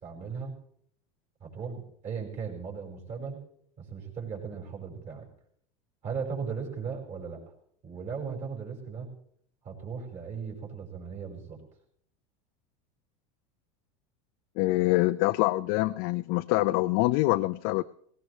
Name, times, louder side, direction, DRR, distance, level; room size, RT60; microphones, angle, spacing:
voice 1, 0.0-0.5 1.4-3.4 3.8-5.3 6.0-7.4 7.8-9.1 9.6-11.6, right 6 dB, 40° right, 0 dB, 5.2 m, -37 dB
voice 2, 14.6-17.8, left 19 dB, 60° left, 10 dB, 0.5 m, -25 dB
18.0 x 18.0 x 3.2 m, 0.64 s
supercardioid pair, 115°, 18 cm